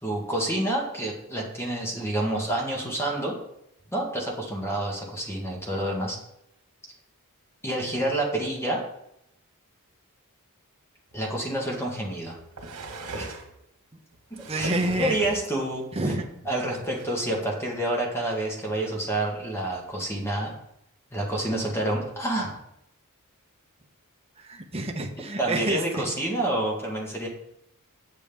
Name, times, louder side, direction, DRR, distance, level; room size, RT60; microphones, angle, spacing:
voice 1, 0.0-3.3 3.9-6.2 7.6-8.8 11.1-12.4 13.2-13.3 14.3-14.7 15.0-15.8 16.5-20.5 21.1-22.5 25.4-27.3, right 1 dB, 10° left, -1 dB, 1.4 m, -28 dB
sound 1, 11.1-11.2 12.2-13.5 14.1-15.5 16.5-16.6 16.9-17.0, right 2 dB, 85° right, 1.3 m, -38 dB
voice 2, 14.4-15.2 15.9-16.3 24.4-26.1, right 1 dB, 25° right, 4 dB, 0.8 m, -28 dB
7.4 x 7.1 x 3.5 m, 0.79 s
head